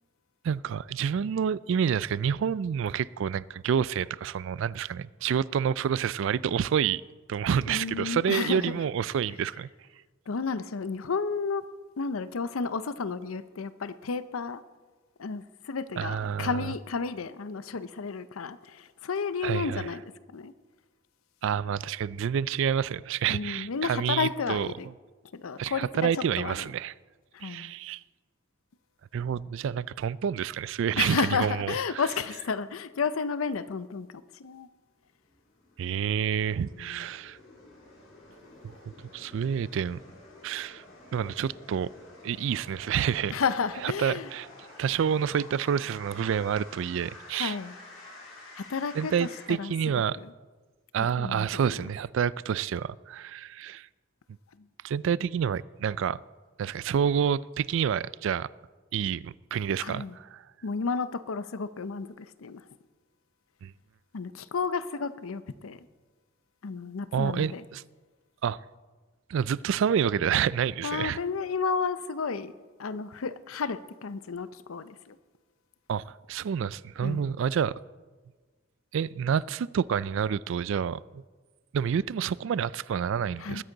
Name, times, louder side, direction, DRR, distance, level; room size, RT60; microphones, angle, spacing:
voice 1, 0.4-7.0 7.3-9.7 16.0-16.7 19.4-19.9 21.4-24.7 25.6-26.9 27.4-28.0 29.1-32.0 35.8-37.4 38.6-38.7 39.0-40.0 40.4-40.8 41.1-41.9 42.2-43.4 43.8-44.5 44.8-47.6 48.9-50.2 50.9-53.9 54.8-56.2 56.6-58.5 58.9-60.4 63.6-63.7 67.1-67.8 68.4-68.6 69.3-71.2 75.9-77.7 78.9-81.2 81.7-83.6, right 7 dB, 65° right, 0.3 m, -28 dB
voice 2, 7.7-8.7 10.3-11.7 12.0-14.6 15.2-20.0 20.3-20.5 23.3-24.9 25.3-25.9 26.1-26.7 27.3-27.7 31.0-34.1 34.4-34.7 36.6-37.1 43.3-44.3 47.3-47.7 48.6-49.7 50.2-50.3 51.0-51.9 59.8-60.2 60.6-62.6 64.1-65.9 66.6-67.6 70.8-72.5 72.8-75.2 77.0-77.2 83.4-83.6, left 5 dB, 90° left, 0.6 m, -32 dB
sound 1, 34.9-49.5, left 2 dB, 70° left, 3.8 m, -50 dB
21.0 x 9.8 x 3.9 m
head